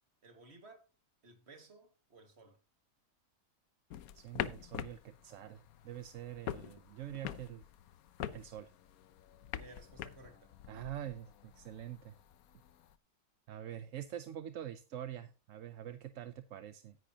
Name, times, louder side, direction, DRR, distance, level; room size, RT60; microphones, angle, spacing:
voice 1, 0.2-0.8 1.2-2.6 9.6-10.5, right 3 dB, 40° right, 2.1 m, -57 dB
sound 1, 3.9-12.9, left 11 dB, 70° left, 1.1 m, -45 dB
voice 2, 4.1-7.6 8.3-8.7 10.7-12.2 13.5-17.0, right 11 dB, 60° right, 0.9 m, -45 dB
13.5 x 10.0 x 2.8 m
omnidirectional pair, 1.7 m